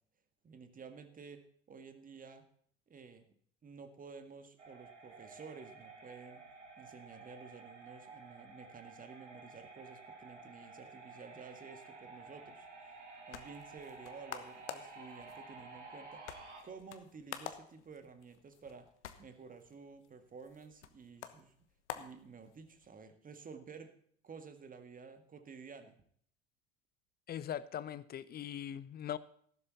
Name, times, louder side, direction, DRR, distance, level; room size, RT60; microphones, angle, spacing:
voice 1, 0.4-2.5 2.9-3.3 3.6-6.4 6.8-12.9 13.3-16.4 16.6-18.9 19.2-21.5 21.9-23.9 24.2-26.0, right 5 dB, 25° right, 9 dB, 1.8 m, -52 dB
sound 1, 4.6-16.6, right 3 dB, 80° right, 2.7 m, -52 dB
sound 2, 12.9-22.9, left 10 dB, 75° left, 1.2 m, -50 dB
voice 2, 27.3-29.2, left 10 dB, 25° left, 18 dB, 0.7 m, -40 dB
14.0 x 12.0 x 4.1 m, 0.62 s
figure-of-eight pair, 75°, 35 cm